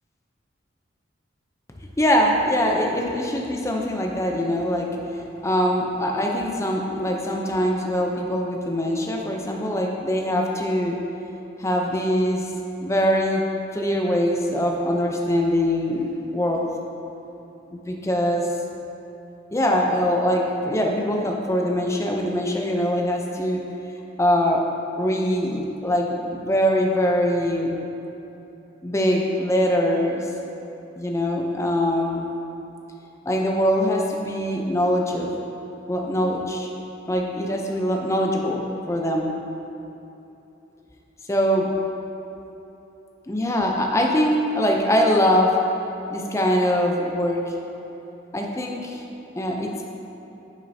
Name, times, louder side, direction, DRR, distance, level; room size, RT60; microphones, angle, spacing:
voice 1, 2.0-4.9 5.1-11.0 11.6-12.5 12.8-13.4 13.7-16.7 17.7-18.5 19.5-23.6 24.2-24.7 25.0-27.8 28.8-30.3 31.0-32.3 33.3-35.3 35.9-36.7 37.1-39.3 41.3-41.7 43.3-45.5 46.1-47.4 48.3-49.0 49.4-49.9, equal, 15° left, 0 dB, 0.5 m, -23 dB
8.9 x 6.4 x 2.7 m, 3.0 s
head